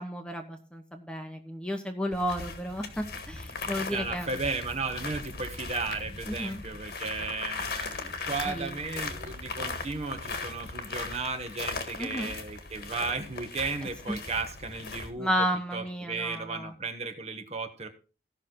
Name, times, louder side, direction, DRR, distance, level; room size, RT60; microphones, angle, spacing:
voice 1, 0.0-4.3 6.3-6.6 8.4-8.7 12.0-12.3 14.1-14.2 15.2-16.7, equal, 5° left, 5 dB, 1.1 m, -32 dB
sound 1, 2.1-15.1, left 3 dB, 55° left, 1.7 m, -38 dB
voice 2, 3.7-17.9, right 4 dB, 35° right, 7 dB, 1.3 m, -35 dB
16.0 x 6.3 x 3.9 m, 0.33 s
head